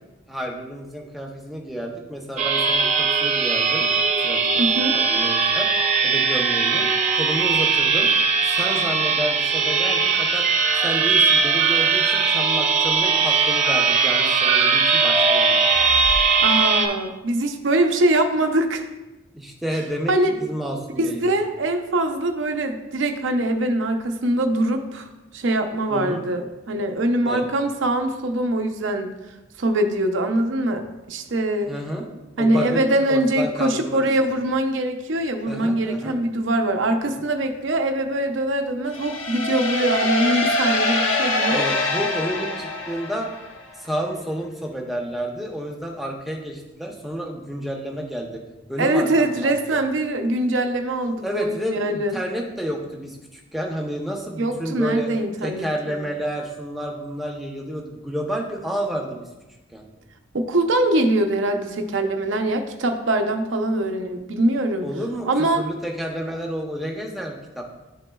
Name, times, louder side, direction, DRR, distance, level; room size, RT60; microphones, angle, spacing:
voice 1, 0.3-3.9 4.2-4.4 4.7-5.7 6.0-6.8 7.1-8.1 8.5-10.5 10.8-15.8 19.3-21.3 25.9-26.2 27.2-27.5 31.7-32.0 32.4-34.0 35.5-36.2 41.5-43.3 43.7-48.4 48.7-49.9 51.2-55.1 55.4-59.3 59.7-59.8 64.8-67.7, equal, ahead, 0 dB, 0.6 m, -30 dB
sound 1, 2.4-16.9, right 5 dB, 35° right, 0.8 m, -19 dB
voice 2, 4.6-4.9 16.4-18.8 20.1-20.3 21.0-25.1 25.3-29.1 29.6-31.7 32.4-41.6 48.8-52.2 54.4-55.7 55.9-56.0 60.3-64.9 65.2-65.6, right 1 dB, 70° right, 5 dB, 0.6 m, -23 dB
sound 2, 38.9-43.6, left 2 dB, 80° left, 0.9 m, -24 dB
11.0 x 4.0 x 2.3 m, 1.1 s
head